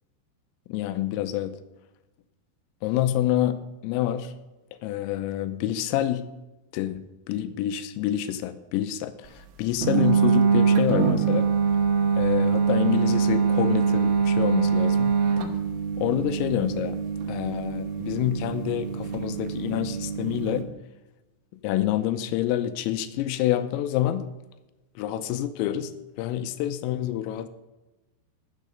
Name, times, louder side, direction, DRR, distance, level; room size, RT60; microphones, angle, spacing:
voice 1, 0.7-1.6 2.8-3.6 3.8-4.3 4.8-6.3 6.7-11.5 12.2-15.2 16.0-17.0 17.3-20.7 21.6-24.2 25.0-25.9 26.2-27.5, left 12 dB, 90° left, 10 dB, 3.3 m, -27 dB
sound 1, 9.8-20.6, right 6 dB, 75° right, 3.4 m, -24 dB
13.5 x 7.6 x 5.1 m, 1.0 s
omnidirectional pair, 6.0 m